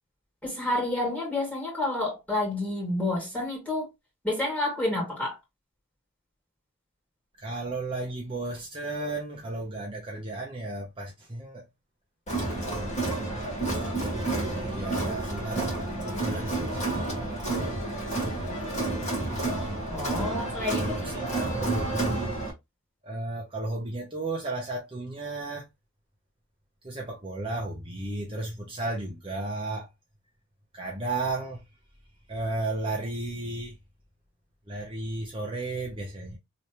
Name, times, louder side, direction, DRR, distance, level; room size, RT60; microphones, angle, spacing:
voice 1, 0.4-3.9 4.2-5.4 19.9-21.0, left 2 dB, 5° left, 2.2 m, -29 dB
voice 2, 7.4-11.6 12.7-13.0 14.3-15.7 16.0-17.4 18.5-18.7 20.7-22.3 23.0-25.7 26.8-29.9 30.7-31.6 32.3-33.7 34.7-36.4, right 2 dB, 25° right, 0.8 m, -34 dB
Crowd, 12.3-22.5, right 2 dB, 35° left, 1.7 m, -30 dB
3.2 x 3.1 x 2.9 m
head